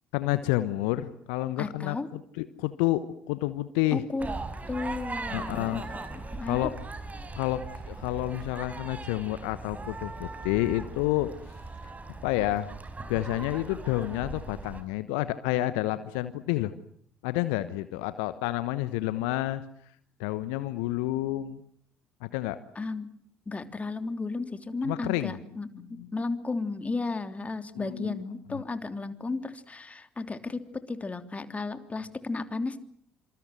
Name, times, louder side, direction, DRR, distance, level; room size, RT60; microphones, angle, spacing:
voice 1, 0.1-4.0 5.3-5.8 6.5-6.7 7.4-11.3 11.8-11.9 12.2-12.7 13.1-16.7 17.2-19.6 20.2-21.6 22.2-22.6 24.8-25.4 26.0-26.1 27.8-28.2 28.5-28.6, left 16 dB, 65° left, 14 dB, 1.1 m, -29 dB
voice 2, 1.6-2.1 3.9-4.3 4.7-6.7 22.7-23.1 23.5-32.8, left 3 dB, 20° left, 10 dB, 3.1 m, -34 dB
sound 1, 4.2-14.8, right 3 dB, 25° right, 4.7 m, -39 dB
27.0 x 27.0 x 7.8 m, 0.66 s
figure-of-eight pair, 50°, 6 cm